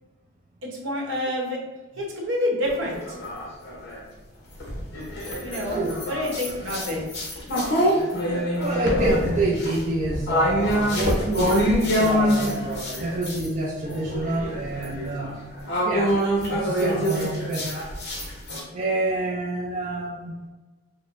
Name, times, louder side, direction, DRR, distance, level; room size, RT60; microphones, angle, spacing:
voice 1, 0.6-1.6 2.0-3.0 5.4-5.8 6.1-7.0, left 1 dB, 65° right, -1 dB, 1.0 m, -27 dB
sound 1, 2.6-4.0 4.6-13.5 13.9-18.6, equal, 50° left, 0.8 m, -25 dB
voice 2, 8.6-11.6 11.9-15.4 15.8-16.1 16.5-17.7 18.7-20.3, right 2 dB, 35° right, -4 dB, 0.4 m, -27 dB
6.0 x 2.1 x 2.5 m, 1.2 s
head